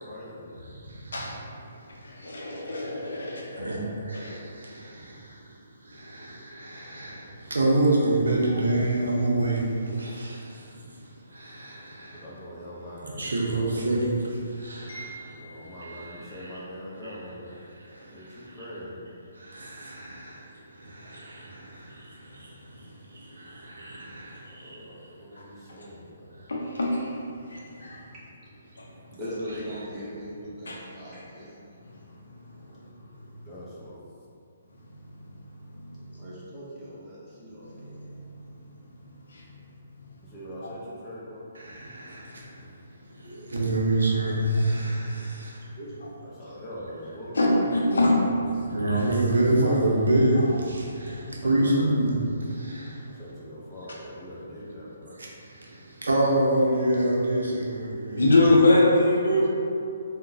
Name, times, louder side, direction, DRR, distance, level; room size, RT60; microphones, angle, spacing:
voice 1, 0.1-0.6 12.2-14.0 15.4-17.5 17.9-19.0 24.6-26.3 33.5-34.0 40.3-41.4 46.4-47.6 51.4-51.9 53.2-55.1, equal, 15° left, -8 dB, 0.7 m, -42 dB
voice 2, 0.6-1.4 3.1-3.2 3.6-5.5 5.8-12.3 13.0-16.6 17.0-17.2 17.8-18.7 19.3-24.8 41.5-42.6 43.2-45.7 48.7-53.0 55.2-58.3, right 1 dB, 65° right, -3 dB, 0.5 m, -28 dB
voice 3, 2.0-3.8 4.1-4.3 14.9-15.8 26.5-27.1 27.5-28.0 30.7-30.8 37.7-37.8 38.3-38.4 39.3-39.4 43.2-43.4 44.5-44.9 47.3-48.1 49.7-49.8 50.4-50.5 53.9-54.0 58.2-59.5, left 2 dB, 65° left, -3 dB, 0.6 m, -24 dB
voice 4, 29.2-31.7 36.0-38.4 45.8-46.6 47.6-48.7, equal, 20° right, -10 dB, 0.9 m, -40 dB
3.6 x 2.1 x 2.7 m, 2.5 s
figure-of-eight pair, 135°, 0 cm